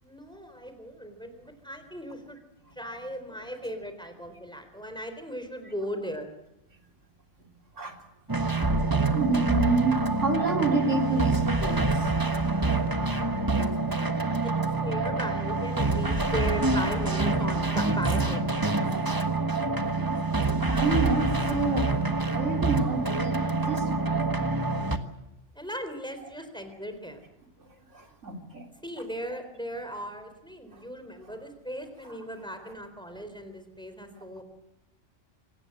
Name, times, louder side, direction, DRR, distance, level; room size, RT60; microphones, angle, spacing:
voice 1, 0.0-2.4 2.7-6.3 12.7-14.1 14.4-14.5 14.8-18.4 25.5-27.2 28.8-34.4, equal, 5° left, 8 dB, 3.8 m, -38 dB
sound 1, 8.3-25.0, right 3 dB, 15° right, 1.3 m, -26 dB
voice 2, 9.1-12.1 18.8-19.2 20.7-24.3 27.9-28.7, right 3 dB, 70° right, 3 dB, 3.9 m, -29 dB
26.5 x 18.5 x 7.9 m, 0.89 s
omnidirectional pair, 1.3 m